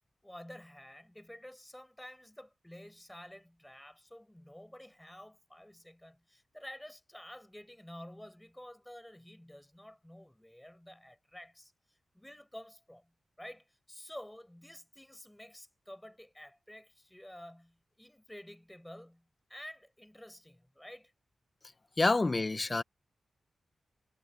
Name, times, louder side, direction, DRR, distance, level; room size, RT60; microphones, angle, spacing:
voice 1, 0.2-21.1, left 1 dB, 5° left, 6.0 m, -51 dB
voice 2, 22.0-22.8, left 3 dB, 25° left, 0.7 m, -27 dB
wide cardioid pair, 105°, 0 cm